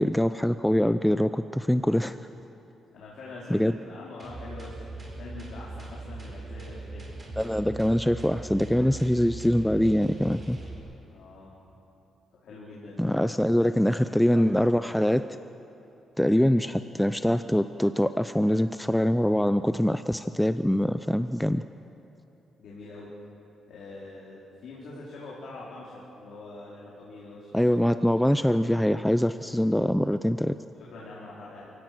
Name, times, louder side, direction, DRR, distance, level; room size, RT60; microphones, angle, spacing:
voice 1, 0.0-2.2 3.5-3.7 7.4-10.6 13.0-15.2 16.2-21.6 27.5-30.6, equal, 5° left, 11 dB, 0.4 m, -24 dB
voice 2, 2.9-7.1 11.1-11.6 12.4-13.0 13.6-14.8 22.6-23.1 23.7-27.8 30.8-31.7, left 2 dB, 70° left, -6 dB, 4.3 m, -44 dB
sound 1, 4.2-10.8, right 2 dB, 25° right, 4.5 m, -40 dB
28.5 x 17.0 x 6.2 m, 2.8 s
cardioid pair, 135°, 0 cm